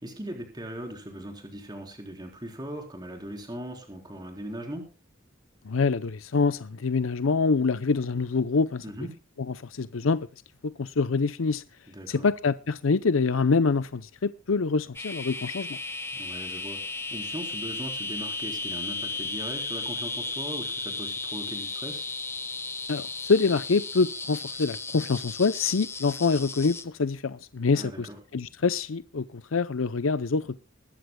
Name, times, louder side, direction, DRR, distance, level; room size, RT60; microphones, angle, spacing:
voice 1, 0.0-4.9 8.8-9.1 11.9-12.3 16.1-22.1 27.7-28.2, right 1 dB, 20° right, 4.0 m, -39 dB
voice 2, 5.7-8.8 9.7-10.3 10.6-11.6 12.1-15.7 22.9-30.6, left 4 dB, 85° left, 0.6 m, -25 dB
sound 1, 14.9-26.8, left 3 dB, 15° left, 1.2 m, -35 dB
21.0 x 14.5 x 2.3 m
head